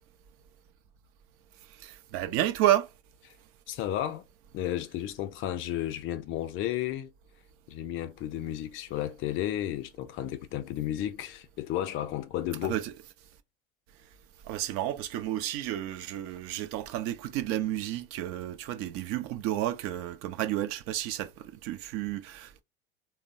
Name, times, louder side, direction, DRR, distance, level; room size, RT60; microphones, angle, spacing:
voice 1, 1.8-2.9 12.6-12.9 14.5-22.6, right 13 dB, 45° right, 0.5 m, -31 dB
voice 2, 3.7-4.2 4.5-7.1 7.7-12.8, left 12 dB, 40° left, 0.5 m, -33 dB
3.3 x 2.1 x 2.6 m
hypercardioid pair, 80°, 31 cm